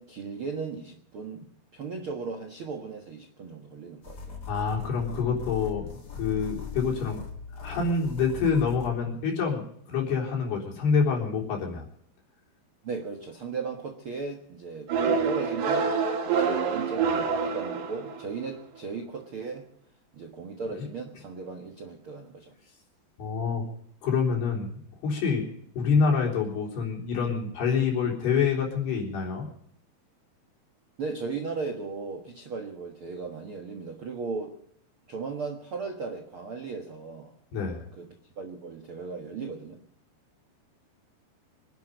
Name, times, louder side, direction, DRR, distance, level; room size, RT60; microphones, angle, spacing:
voice 1, 0.0-1.5 1.7-4.4 12.8-15.9 16.2-19.7 20.1-22.5 31.0-34.6 35.1-37.3 38.0-38.1 38.4-39.8, right 4 dB, 65° right, 1.3 m, -36 dB
sound 1, 4.0-8.9, left 6 dB, 35° left, 1.7 m, -40 dB
voice 2, 4.5-7.2 7.6-11.8 20.8-20.9 23.2-23.7 24.0-24.7 25.0-25.5 25.8-29.5 37.5-37.8, left 5 dB, 75° left, 5.8 m, -27 dB
sound 2, 14.9-18.4, right 5 dB, 90° right, 4.5 m, -26 dB
25.0 x 10.5 x 5.3 m
omnidirectional pair, 4.8 m